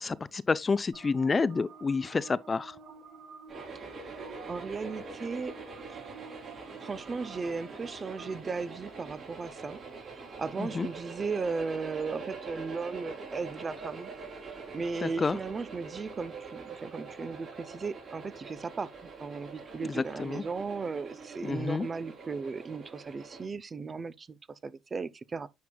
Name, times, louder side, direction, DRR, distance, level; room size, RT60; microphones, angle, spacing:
voice 1, 0.0-2.8 10.6-10.9 15.0-15.4 19.8-20.4 21.4-21.9, left 4 dB, 30° left, 0.4 m, -29 dB
sound 1, 0.9-8.3, right 5 dB, 80° right, 4.0 m, -50 dB
sound 2, 3.5-23.5, right 4 dB, 55° right, 3.8 m, -44 dB
voice 2, 4.5-5.5 5.9-6.0 6.8-9.8 10.4-14.1 14.7-18.9 19.2-24.4 24.6-25.5, right 4 dB, 35° right, 0.5 m, -36 dB
9.3 x 4.6 x 2.2 m
cardioid pair, 85°, 0 cm